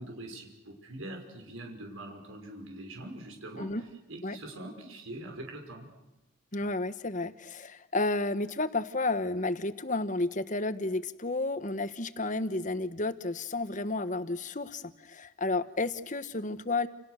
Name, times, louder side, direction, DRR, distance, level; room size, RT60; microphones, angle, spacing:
voice 1, 0.0-5.9, right 1 dB, 85° right, 3 dB, 5.8 m, -43 dB
voice 2, 6.5-16.9, left 2 dB, 40° left, 12 dB, 1.3 m, -32 dB
29.5 x 29.5 x 6.6 m, 0.98 s
head